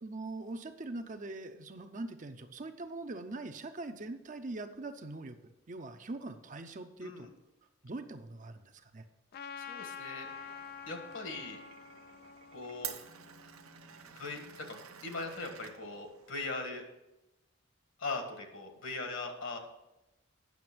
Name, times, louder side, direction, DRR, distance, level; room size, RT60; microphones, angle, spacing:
voice 1, 0.0-5.4 5.7-7.3 7.8-9.1, right 2 dB, 35° right, 7 dB, 0.6 m, -42 dB
Trumpet, 9.3-14.0, left 7 dB, 45° left, 0.4 m, -47 dB
voice 2, 9.6-10.3 10.9-11.6 12.5-12.9 14.1-16.8 18.0-19.6, left 3 dB, 60° left, 4 dB, 1.7 m, -40 dB
Glass, 10.2-16.5, right 9 dB, 85° right, 0.9 m, -49 dB
9.3 x 6.5 x 6.1 m, 0.94 s
head